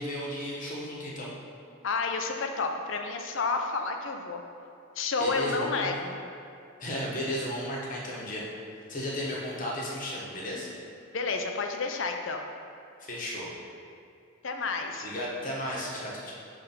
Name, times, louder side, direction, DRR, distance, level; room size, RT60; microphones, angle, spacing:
voice 1, 0.0-1.3 5.2-5.9 6.8-8.5 8.9-10.7 13.0-13.5 15.0-16.3, left 1 dB, 40° left, -4 dB, 1.1 m, -34 dB
voice 2, 1.8-4.4 5.0-6.2 11.1-12.4 14.4-15.1, left 4 dB, 65° left, 4 dB, 0.6 m, -30 dB
5.7 x 3.5 x 5.4 m, 2.5 s
head